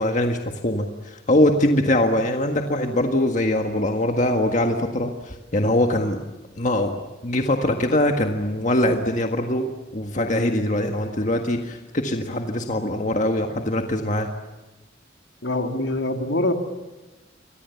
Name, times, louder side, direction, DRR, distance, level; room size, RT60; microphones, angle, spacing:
voice 1, 0.0-6.2 6.6-7.0 7.2-14.3, left 1 dB, 40° left, 4 dB, 1.7 m, -22 dB
voice 2, 15.4-16.5, left 1 dB, 75° left, 4 dB, 3.1 m, -24 dB
28.5 x 23.5 x 7.1 m, 1.1 s
head